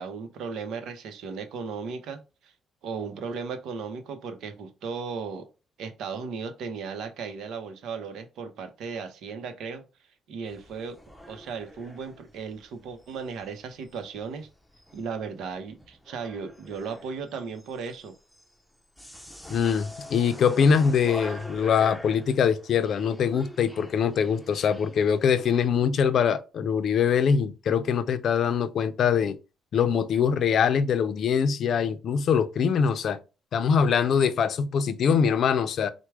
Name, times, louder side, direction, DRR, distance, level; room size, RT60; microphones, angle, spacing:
voice 1, 0.0-2.5 2.8-5.5 5.8-9.8 10.3-11.0 11.3-14.5 14.9-18.1, right 5 dB, 80° right, 0.7 m, -36 dB
sound 1, 10.4-25.7, left 1 dB, ahead, 0.7 m, -45 dB
voice 2, 19.5-29.4 29.7-33.2 33.5-35.9, left 7 dB, 65° left, 0.5 m, -23 dB
4.5 x 2.2 x 4.7 m
cardioid pair, 90°, 0 cm